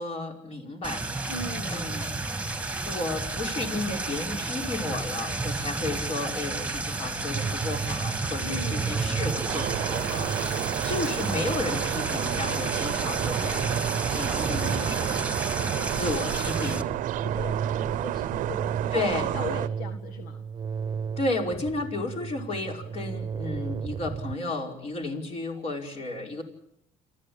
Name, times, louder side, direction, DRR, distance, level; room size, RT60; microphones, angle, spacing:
voice 1, 0.0-1.3 1.7-2.1 2.9-13.7 14.1-15.2 15.9-16.9 18.9-19.3 21.2-26.4, left 2 dB, 45° left, 2 dB, 5.2 m, -33 dB
sound 1, 0.8-16.8, right 2 dB, 10° right, 1.7 m, -32 dB
voice 2, 1.3-2.0 8.4-9.2 14.3-16.1 17.2-20.4, left 3 dB, 75° left, 6 dB, 1.8 m, -40 dB
sound 2, 7.3-24.4, right 6 dB, 30° right, 1.0 m, -35 dB
sound 3, 9.5-19.7, right 14 dB, 65° right, 0.8 m, -31 dB
27.5 x 14.5 x 8.7 m, 0.77 s
supercardioid pair, 95°, 14 cm